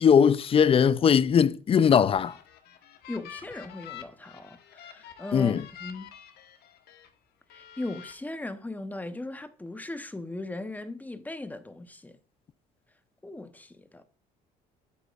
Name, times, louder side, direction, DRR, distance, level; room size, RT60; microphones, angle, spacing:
voice 1, 0.0-2.3 5.3-5.6, left 7 dB, 35° left, 0.4 m, -20 dB
sound 1, 2.0-7.1 7.5-8.1, left 9 dB, 70° left, 1.2 m, -47 dB
voice 2, 3.1-6.1 7.5-12.2 13.2-14.0, left 2 dB, 10° left, 0.8 m, -38 dB
8.4 x 8.2 x 2.4 m
cardioid pair, 110°, 17 cm